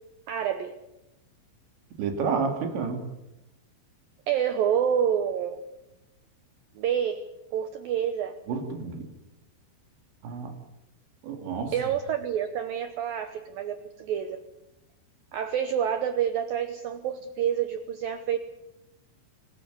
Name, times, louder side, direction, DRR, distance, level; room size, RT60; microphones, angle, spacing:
voice 1, 0.3-0.7 4.3-5.6 6.8-7.2 7.5-8.4 11.7-14.4 15.3-18.4, right 9 dB, 85° right, 9 dB, 2.0 m, -28 dB
voice 2, 2.0-3.1 8.5-9.1 10.2-10.5 11.2-11.7, right 5 dB, 65° right, 4 dB, 5.1 m, -30 dB
25.5 x 15.0 x 9.5 m, 0.95 s
omnidirectional pair, 5.6 m